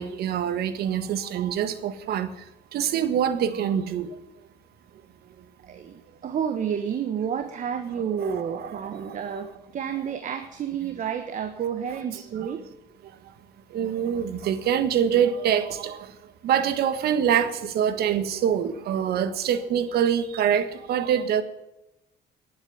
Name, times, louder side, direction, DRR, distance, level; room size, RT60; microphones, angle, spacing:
voice 1, 0.0-2.3 2.7-4.1 8.2-9.2 11.9-12.0 13.7-16.1 16.4-21.4, right 9 dB, 70° right, 1.5 m, -25 dB
voice 2, 5.6-12.6, right 8 dB, 50° right, 1.3 m, -30 dB
11.5 x 8.8 x 9.8 m
cardioid pair, 110°, 17 cm